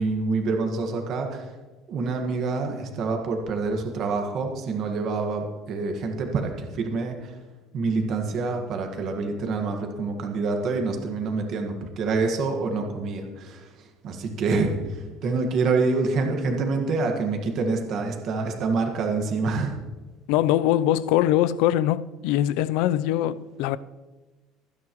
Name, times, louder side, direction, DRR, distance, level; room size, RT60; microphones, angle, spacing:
voice 1, 0.0-1.5 1.9-7.4 7.7-19.7, right 3 dB, 40° right, 1.6 m, -27 dB
voice 2, 20.3-23.8, left 12 dB, 70° left, 0.5 m, -22 dB
24.5 x 9.7 x 3.1 m
cardioid pair, 175°, 0 cm